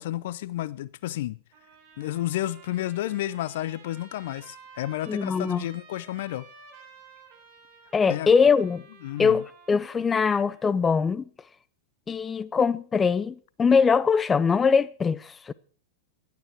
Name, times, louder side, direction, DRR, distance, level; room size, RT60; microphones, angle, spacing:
voice 1, 0.0-1.4 2.0-6.5 8.1-8.3 9.0-9.4, left 14 dB, 60° left, 0.6 m, -31 dB
Trumpet, 1.5-10.7, right 5 dB, 50° right, 4.9 m, -52 dB
voice 2, 5.1-5.6 7.9-8.8 9.2-11.2 12.1-15.5, left 5 dB, 20° left, 0.6 m, -22 dB
16.5 x 11.5 x 4.5 m
hypercardioid pair, 95°, 0 cm